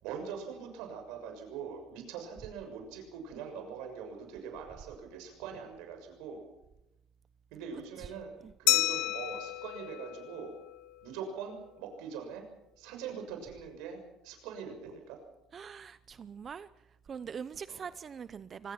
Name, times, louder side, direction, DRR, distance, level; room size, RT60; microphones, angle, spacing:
voice 1, 0.0-6.4 7.5-10.5 11.0-12.5 12.8-15.2 17.7-17.8, right 6 dB, 80° right, 6.5 m, -43 dB
Glass, 8.7-11.1, left 17 dB, 80° left, 1.3 m, -31 dB
voice 2, 15.5-16.7 17.1-18.7, right 7 dB, 40° right, 0.8 m, -43 dB
24.5 x 21.5 x 6.0 m
supercardioid pair, 100°, 0 cm